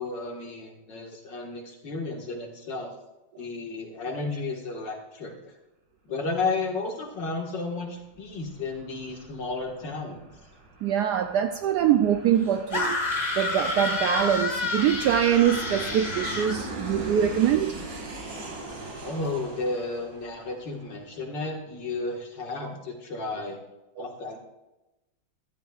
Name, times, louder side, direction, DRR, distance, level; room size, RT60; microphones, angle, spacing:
voice 1, 0.0-2.9 3.4-5.5 6.0-10.3 19.0-23.6 24.0-24.4, left 3 dB, 60° left, 2.3 m, -33 dB
Aircraft, 7.9-21.1, right 2 dB, 55° right, 2.9 m, -40 dB
voice 2, 10.8-13.0 13.4-17.8 24.0-24.1, right 9 dB, 90° right, 0.9 m, -23 dB
sound 1, 12.7-16.6, left 3 dB, 25° left, 1.4 m, -29 dB
15.5 x 12.5 x 2.4 m
omnidirectional pair, 2.3 m